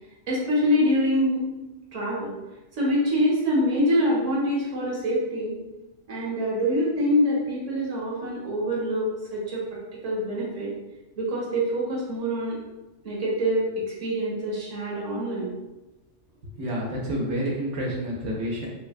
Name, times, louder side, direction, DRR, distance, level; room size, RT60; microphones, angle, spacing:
voice 1, 0.3-1.5 1.9-2.3 2.7-5.6 6.1-9.7 10.0-10.7 11.2-12.6 13.0-15.5, equal, 35° right, -6 dB, 0.9 m, -25 dB
voice 2, 16.5-18.7, equal, 75° right, -3 dB, 0.9 m, -29 dB
3.4 x 2.1 x 2.4 m, 1.1 s
omnidirectional pair, 1.3 m